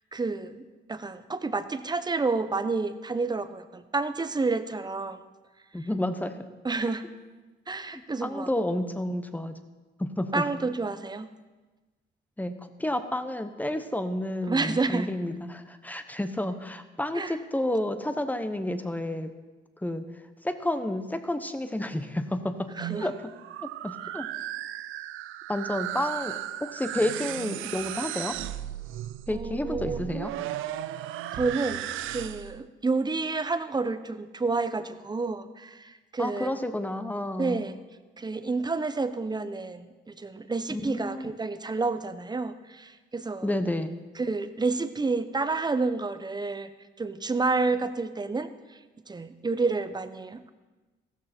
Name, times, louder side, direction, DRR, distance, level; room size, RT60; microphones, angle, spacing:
voice 1, 0.1-5.2 6.6-7.0 7.7-8.5 10.3-11.3 14.5-15.1 17.1-17.4 22.8-23.1 29.3-30.0 31.3-36.5 37.4-37.8 38.2-43.5 44.2-46.7 47.0-48.5 49.1-50.5, right 3 dB, 20° right, 11 dB, 0.9 m, -29 dB
voice 2, 5.7-6.3 7.9-9.5 10.0-10.4 12.4-19.3 19.8-20.0 20.4-22.7 23.0-23.2 23.8-24.3 25.5-28.4 29.3-30.3 36.2-37.6 40.7-41.4 43.4-43.9, left 1 dB, 10° left, 9 dB, 1.1 m, -30 dB
sound 1, 22.6-32.6, right 13 dB, 85° right, 0.5 m, -36 dB
15.0 x 13.5 x 4.4 m, 1.2 s
cardioid pair, 90°, 20 cm